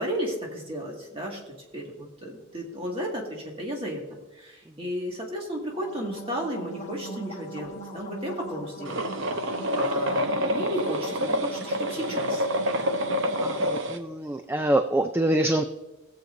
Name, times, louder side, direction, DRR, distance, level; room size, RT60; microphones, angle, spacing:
voice 1, 0.0-1.4 1.7-4.0 4.4-9.0 9.4-12.9, equal, 25° right, -1 dB, 1.9 m, -34 dB
sound 1, 5.7-13.6, right 1 dB, 30° left, 1.1 m, -41 dB
sound 2, 8.8-14.0, equal, 65° right, 0.8 m, -27 dB
voice 2, 13.4-15.6, right 1 dB, 10° right, 6 dB, 0.3 m, -25 dB
19.0 x 7.4 x 2.6 m, 1.1 s
head